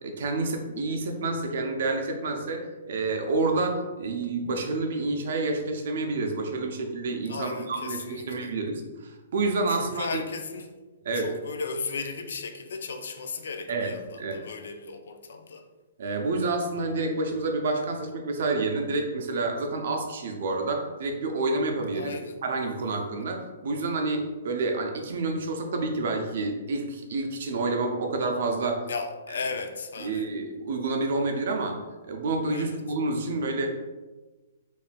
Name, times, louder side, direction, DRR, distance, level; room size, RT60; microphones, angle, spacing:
voice 1, 0.0-10.2 11.0-11.3 13.7-13.9 14.2-14.4 16.0-22.1 22.4-28.9 30.0-31.8 32.1-33.7, right 3 dB, 50° right, 4 dB, 0.5 m, -28 dB
voice 2, 7.3-8.6 9.7-10.8 11.1-15.7 21.9-22.4 28.9-30.3 32.5-32.8, left 4 dB, 65° left, 6 dB, 0.4 m, -36 dB
4.1 x 3.2 x 2.2 m, 1.2 s
hypercardioid pair, 180°, 0 cm